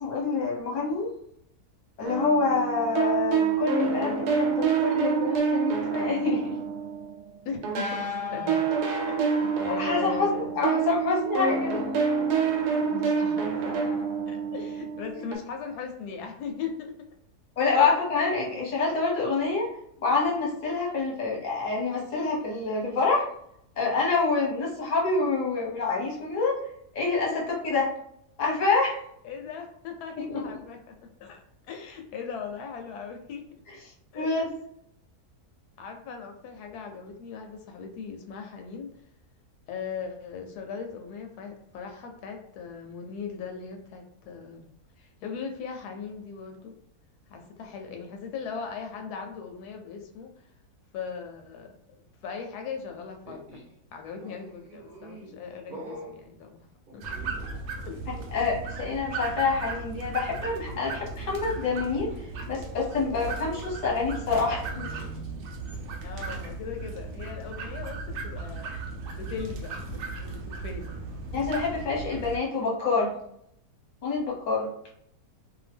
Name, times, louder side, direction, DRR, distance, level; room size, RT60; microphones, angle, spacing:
voice 1, 0.0-1.1 2.0-6.6 9.8-11.8 17.6-19.7 20.0-23.3 23.8-26.6 26.9-27.9 28.4-29.0 30.2-30.4 33.7-33.8 34.1-34.5 58.1-64.9 71.3-73.1 74.0-74.7, left 4 dB, 35° left, -4 dB, 0.8 m, -27 dB
sound 1, 2.0-7.3 7.6-15.4, right 6 dB, 85° right, 1.2 m, -27 dB
voice 2, 7.4-8.6 9.4-10.6 12.9-13.9 14.3-16.9 17.7-17.9 27.3-27.4 29.2-30.8 31.2-33.4 34.1-34.4 35.8-38.9 39.7-44.7 45.0-46.7 47.3-50.3 50.9-53.6 53.9-56.7 56.9-57.0 57.9-58.0 66.0-68.7 69.1-71.0, left 6 dB, 85° left, 3 dB, 1.1 m, -38 dB
sound 2, 53.2-53.7 54.2-55.4 55.7-56.2 56.9-57.8 58.0-58.3 60.3-65.2, right 1 dB, 40° right, 0.8 m, -47 dB
sound 3, 57.0-72.4, right 3 dB, 70° right, 0.9 m, -37 dB
2.7 x 2.2 x 3.3 m, 0.71 s
omnidirectional pair, 1.6 m